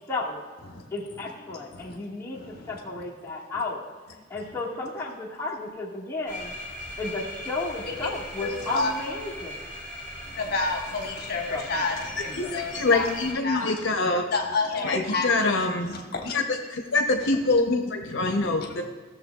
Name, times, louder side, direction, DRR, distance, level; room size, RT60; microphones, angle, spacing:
voice 1, 0.1-0.4 0.9-3.8 4.3-6.5 7.0-9.6 11.5-11.8 12.3-12.5, left 3 dB, 15° left, -6 dB, 1.6 m, -33 dB
voice 2, 1.5-2.0 2.3-3.0 4.3-4.6 7.9-8.1 8.4-8.9 10.2-13.1 13.4-13.7 14.3-16.4 17.5-17.6 18.3-18.5, left 3 dB, 55° left, 1 dB, 1.1 m, -31 dB
sound 1, 6.3-13.3, left 1 dB, 45° right, 2.7 m, -39 dB
voice 3, 12.7-14.2 14.8-16.0 16.3-16.4 16.7-18.8, left 3 dB, 75° left, 3 dB, 0.7 m, -24 dB
15.5 x 6.9 x 2.3 m, 1.5 s
head